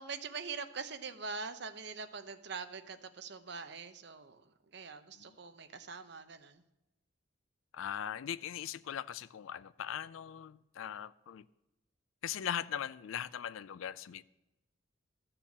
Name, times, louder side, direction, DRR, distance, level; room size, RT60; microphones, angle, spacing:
voice 1, 0.0-6.6, right 5 dB, 55° right, 0.8 m, -43 dB
voice 2, 7.7-11.4 12.2-14.2, left 9 dB, 85° left, 0.4 m, -40 dB
13.5 x 6.8 x 7.3 m
head